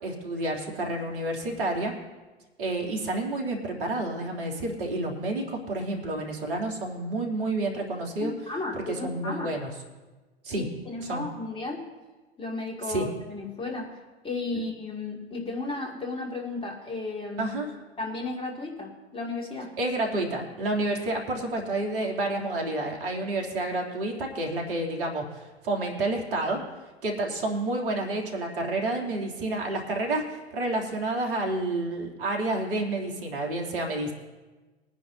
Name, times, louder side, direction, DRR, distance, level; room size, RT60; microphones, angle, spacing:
voice 1, 0.0-1.9 2.6-8.3 8.7-9.7 10.4-10.7 11.1-11.2 12.9-13.1 17.4-17.7 19.8-26.6 27.0-34.1, right 2 dB, 60° right, 0 dB, 3.1 m, -29 dB
voice 2, 8.2-9.5 10.5-11.8 12.4-13.9 14.2-17.5 18.0-19.7, left 3 dB, 15° left, -1 dB, 2.5 m, -34 dB
22.5 x 10.0 x 2.8 m, 1.2 s
figure-of-eight pair, 90°, 32 cm